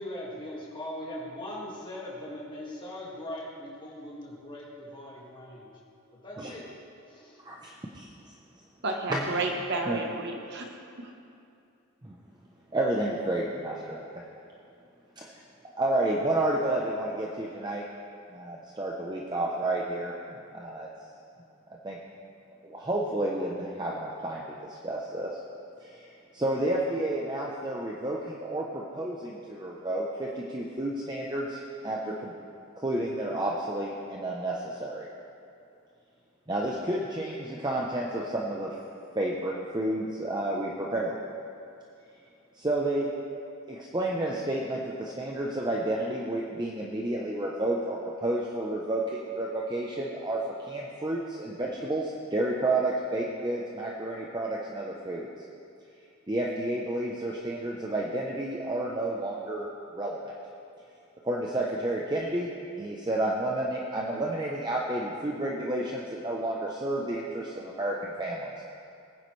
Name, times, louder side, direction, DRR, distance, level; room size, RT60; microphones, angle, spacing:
voice 1, 0.0-5.7 6.2-6.6 7.1-7.4, left 1 dB, 20° left, -4 dB, 2.1 m, -40 dB
voice 2, 7.4-8.1 9.1-9.4 9.9-10.0 12.0-12.2 12.7-14.2 15.2-15.3 15.8-17.8 18.3-20.1 20.5-20.9 21.8-22.0 22.6-25.4 25.8-26.1 26.3-32.3 32.8-35.1 36.5-38.8 39.1-41.2 42.6-43.1 43.7-55.3 56.3-60.3 61.2-62.5 62.8-68.5, right 1 dB, 20° right, -3 dB, 0.7 m, -31 dB
voice 3, 8.8-11.1, right 2 dB, 50° right, 2 dB, 1.0 m, -32 dB
19.5 x 9.7 x 3.3 m, 2.5 s
head